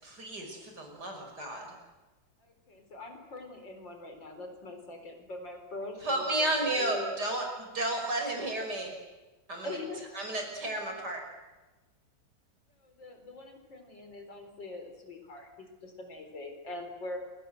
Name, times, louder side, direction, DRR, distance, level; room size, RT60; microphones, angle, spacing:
voice 1, 0.0-1.7 6.0-8.9 9.5-9.8 10.2-11.2, right 1 dB, 60° right, 3 dB, 6.4 m, -32 dB
voice 2, 2.4-6.5 6.8-7.2 9.6-10.2 12.8-17.2, left 2 dB, 70° left, 6 dB, 5.0 m, -43 dB
27.5 x 24.5 x 7.8 m, 1.2 s
omnidirectional pair, 2.0 m